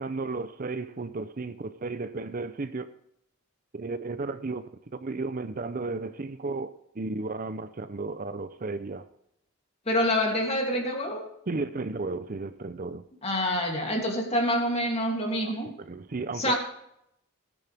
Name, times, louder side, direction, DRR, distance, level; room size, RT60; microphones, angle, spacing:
voice 1, 0.0-2.9 3.7-9.1 11.5-13.1 15.4-15.5 15.8-16.5, right 3 dB, 40° right, 0.5 m, -34 dB
voice 2, 9.9-11.3 13.2-15.7 16.3-16.5, left 1 dB, 30° left, 2.8 m, -26 dB
16.5 x 10.0 x 3.5 m
head